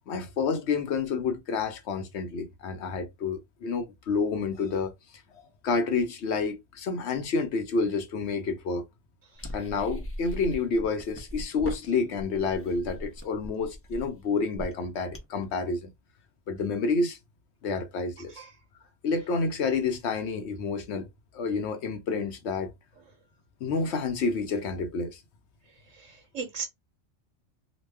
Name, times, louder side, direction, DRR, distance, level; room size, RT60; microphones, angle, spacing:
voice 1, 0.1-4.9 5.6-8.8 9.5-15.9 16.5-17.2 17.6-18.3 19.0-21.1 21.3-22.7 23.6-25.2, left 4 dB, 65° left, 1.0 m, -29 dB
sound 1, 9.4-15.4, equal, 15° left, 0.6 m, -39 dB
voice 2, 26.0-26.6, right 6 dB, 80° right, 1.2 m, -36 dB
3.0 x 2.3 x 3.3 m
omnidirectional pair, 1.3 m